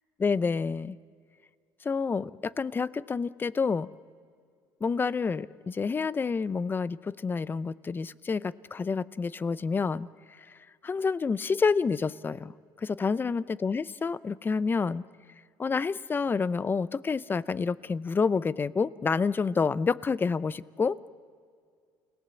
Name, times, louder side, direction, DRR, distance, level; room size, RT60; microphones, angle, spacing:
voice 1, 0.2-1.0 1.8-3.9 4.8-10.1 10.4-10.6 10.8-12.5 12.8-15.0 15.6-21.0, left 5 dB, 25° left, 18 dB, 0.6 m, -28 dB
29.5 x 18.5 x 7.1 m, 2.2 s
supercardioid pair, 90°, 9 cm